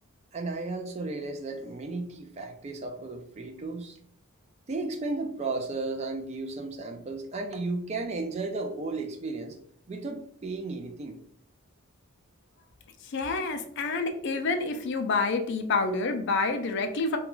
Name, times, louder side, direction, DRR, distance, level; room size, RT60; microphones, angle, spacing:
voice 1, 0.3-4.0 4.7-9.6 9.9-11.2, right 3 dB, 30° right, 4 dB, 0.3 m, -34 dB
voice 2, 13.0-17.2, left 3 dB, 50° left, 7 dB, 0.3 m, -28 dB
2.4 x 2.3 x 2.9 m, 0.63 s
head